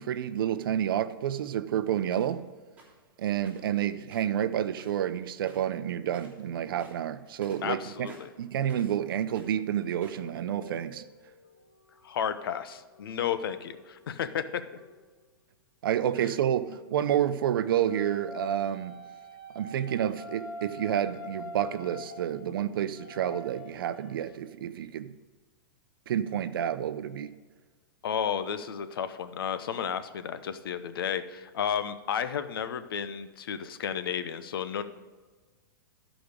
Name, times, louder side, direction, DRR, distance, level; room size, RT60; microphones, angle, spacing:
voice 1, 0.0-2.5 3.2-8.1 8.4-11.0 15.8-19.0 19.5-25.1 26.1-27.3, right 10 dB, 75° right, 0.6 m, -29 dB
sound 1, 2.1-2.4 2.8-3.0 3.4-3.8 4.0-5.2 5.4-5.8 6.1-6.4 6.7-9.0 9.3-10.3, right 3 dB, 10° right, 3.0 m, -54 dB
voice 2, 7.6-8.3 12.0-14.4 28.0-34.8, left 8 dB, 80° left, 0.7 m, -32 dB
sound 2, 9.8-14.9 16.9-24.4, left 1 dB, 60° left, 2.4 m, -46 dB
13.0 x 5.0 x 5.1 m
hypercardioid pair, 130°, 12 cm